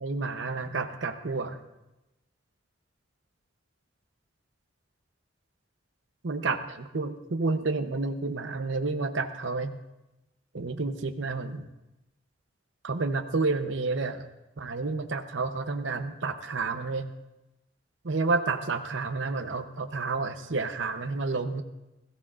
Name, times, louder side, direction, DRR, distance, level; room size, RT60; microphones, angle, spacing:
voice 1, 0.0-1.6 6.2-9.8 10.5-11.7 12.8-14.3 14.6-17.1 18.0-21.6, right 3 dB, 70° right, 7 dB, 0.8 m, -30 dB
20.5 x 14.5 x 2.5 m, 0.97 s
head